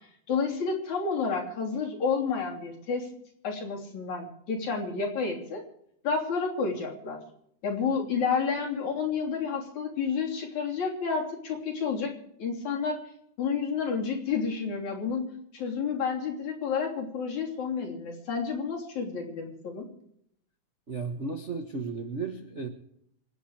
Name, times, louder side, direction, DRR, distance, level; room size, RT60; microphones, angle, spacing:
voice 1, 0.0-3.1 3.4-5.6 6.0-7.2 7.6-13.0 13.4-15.3 15.5-19.9, left 5 dB, 65° left, 1 dB, 4.5 m, -30 dB
voice 2, 20.9-22.7, right 4 dB, 35° right, 3 dB, 1.2 m, -34 dB
26.5 x 9.2 x 4.9 m, 0.72 s
omnidirectional pair, 3.5 m